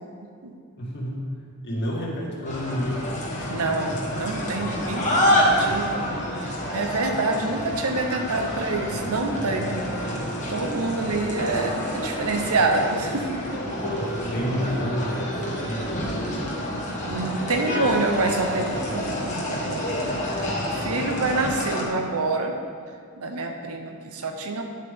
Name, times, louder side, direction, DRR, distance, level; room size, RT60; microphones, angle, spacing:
voice 1, 0.8-1.2 1.6-3.1 3.4-3.8 13.7-16.5, equal, 50° left, -4 dB, 2.1 m, -30 dB
sound 1, 2.4-21.8, equal, 35° left, 1.6 m, -28 dB
voice 2, 3.5-10.1 10.5-13.6 17.0-22.5 23.2-24.6, right 3 dB, 70° right, 4 dB, 0.9 m, -27 dB
10.5 x 7.7 x 3.7 m, 2.2 s
head